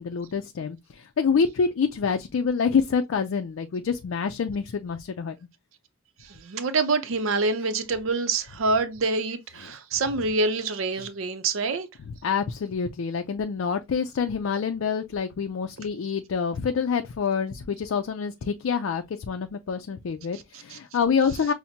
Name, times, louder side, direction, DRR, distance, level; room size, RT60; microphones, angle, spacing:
voice 1, 0.0-5.4 11.0-11.1 12.0-21.5, left 6 dB, 75° left, 0.4 m, -27 dB
voice 2, 6.3-11.9 20.7-20.8, right 3 dB, 80° right, 0.6 m, -26 dB
5.7 x 2.0 x 2.7 m
head